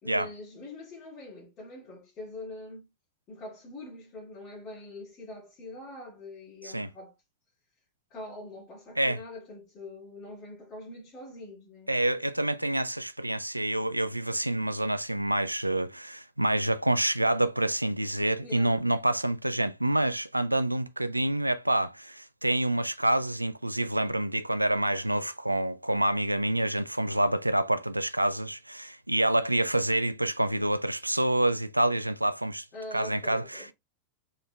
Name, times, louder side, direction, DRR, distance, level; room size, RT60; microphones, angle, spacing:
voice 1, 0.0-2.9 3.3-7.2 8.1-11.9 18.4-18.8 32.7-33.7, left 2 dB, 35° left, 2.4 m, -44 dB
voice 2, 11.9-32.6 32.9-33.7, right 1 dB, 85° right, 0.4 m, -27 dB
4.2 x 3.8 x 3.2 m
figure-of-eight pair, 90°, 0 cm